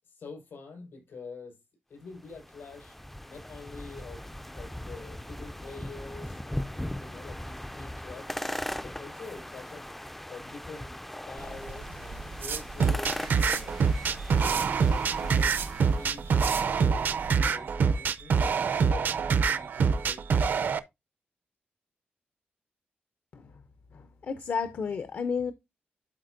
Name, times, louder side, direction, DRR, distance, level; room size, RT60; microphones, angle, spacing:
voice 1, 0.0-1.6 1.9-3.0 3.3-4.2 4.6-8.4 8.8-9.9 10.3-13.9 14.3-20.2, left 4 dB, 75° left, 5.2 m, -46 dB
sound 1, 2.1-16.2, left 1 dB, 5° left, 0.3 m, -39 dB
sound 2, 11.4-17.3, right 5 dB, 80° right, 1.2 m, -39 dB
sound 3, 12.8-20.8, right 5 dB, 60° right, 0.5 m, -25 dB
voice 2, 23.9-25.5, left 5 dB, 60° left, 0.6 m, -32 dB
12.0 x 4.3 x 2.6 m
wide cardioid pair, 155°, 4 cm